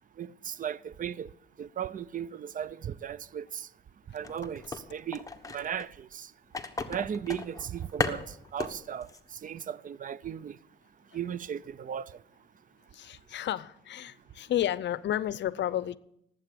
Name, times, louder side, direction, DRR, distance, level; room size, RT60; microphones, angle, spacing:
voice 1, 0.2-1.3 1.6-3.7 4.1-4.6 4.9-6.3 6.9-8.2 8.5-9.1 9.4-10.6 11.1-12.1, right 9 dB, 40° right, 0.5 m, -36 dB
sound 1, 4.2-5.9 6.5-8.7 9.0-9.2 9.6-9.7, left 3 dB, 15° left, 1.3 m, -35 dB
voice 2, 13.0-16.0, left 12 dB, 65° left, 0.6 m, -31 dB
18.5 x 8.3 x 6.8 m
cardioid pair, 90°, 20 cm